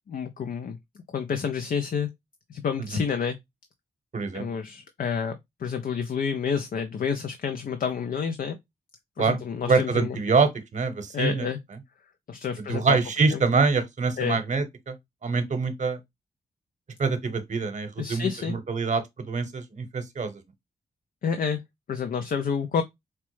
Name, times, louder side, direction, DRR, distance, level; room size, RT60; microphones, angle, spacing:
voice 1, 0.1-0.8 1.1-2.1 2.5-3.4 4.3-8.6 9.2-10.2 11.1-11.6 12.3-13.0 13.3-13.4 14.2-14.4 18.0-18.6 21.2-21.6 21.9-22.8, left 6 dB, 60° left, 0.5 m, -29 dB
voice 2, 4.1-4.5 9.2-9.4 9.6-11.5 12.6-14.9 15.2-16.0 17.0-20.4, right 4 dB, 45° right, 0.9 m, -25 dB
4.4 x 2.0 x 3.1 m
cardioid pair, 55°, 17 cm